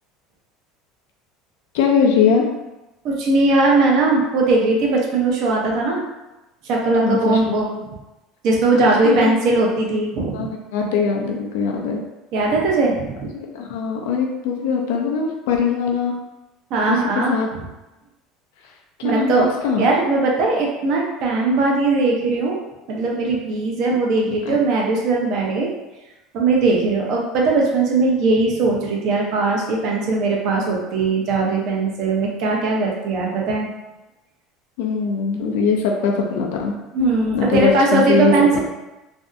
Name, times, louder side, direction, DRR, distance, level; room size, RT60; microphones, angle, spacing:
voice 1, 1.7-2.5 7.0-7.4 8.7-9.4 10.3-12.0 13.3-16.1 16.9-17.0 17.3-17.5 18.6-18.7 19.0-19.9 24.4-24.6 34.8-36.8 37.3-38.6, left 5 dB, 80° left, 0 dB, 0.4 m, -21 dB
voice 2, 3.0-6.0 6.6-7.9 8.4-10.5 12.3-13.3 16.7-17.3 19.0-19.5 19.8-22.6 22.9-25.7 26.3-33.7 36.9-38.6, right 3 dB, 60° right, -1 dB, 0.6 m, -19 dB
2.6 x 2.2 x 2.5 m, 1.0 s
supercardioid pair, 90°, 0 cm